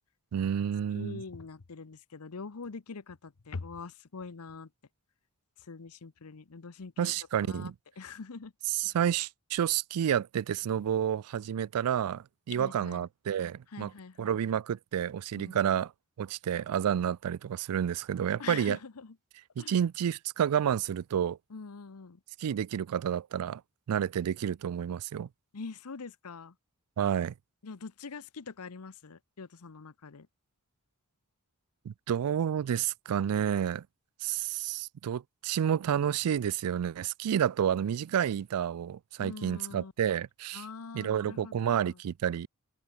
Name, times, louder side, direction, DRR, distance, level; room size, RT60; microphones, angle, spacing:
voice 1, 0.3-1.2 7.0-7.7 8.7-13.9 14.2-15.9 16.2-18.8 19.6-21.4 22.4-23.6 23.9-25.3 27.0-27.3 31.9-33.9 34.2-40.6 40.9-42.5, right 9 dB, 85° right, 0.4 m, -30 dB
voice 2, 0.9-4.7 5.6-8.5 8.8-9.0 12.5-13.0 13.7-14.4 15.3-15.8 18.4-19.2 19.6-19.8 21.5-22.2 25.5-26.5 27.6-30.3 39.2-39.9 40.5-42.0, left 4 dB, 85° left, 0.8 m, -44 dB
open air
head